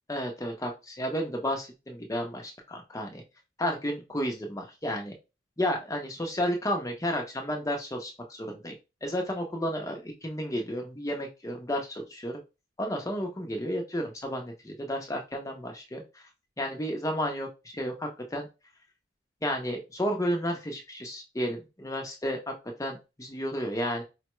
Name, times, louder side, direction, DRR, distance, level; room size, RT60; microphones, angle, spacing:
voice 1, 0.1-3.2 3.6-5.1 5.6-8.7 9.0-12.4 12.8-16.2 16.6-18.5 19.4-22.5 22.8-24.0, equal, 15° left, 2 dB, 0.8 m, -32 dB
4.9 x 2.2 x 3.1 m, 0.27 s
head